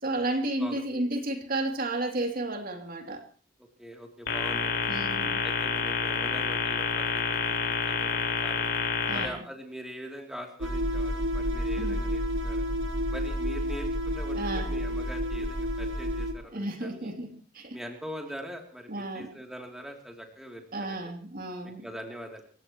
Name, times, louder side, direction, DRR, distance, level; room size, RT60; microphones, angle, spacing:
voice 1, 0.0-3.2 4.9-5.4 9.1-9.4 11.8-12.0 14.3-14.7 16.5-17.8 18.9-19.4 20.7-21.9, right 2 dB, 50° right, 3 dB, 3.0 m, -32 dB
voice 2, 3.8-4.9 5.4-7.5 7.9-8.7 9.1-12.6 13.1-17.1 17.7-21.1 21.8-22.5, equal, 5° right, 1 dB, 3.1 m, -42 dB
sound 1, 4.3-9.3, left 5 dB, 70° left, 4.8 m, -28 dB
sound 2, 10.6-16.3, equal, 75° right, 2.4 m, -30 dB
28.0 x 16.5 x 3.1 m, 0.37 s
head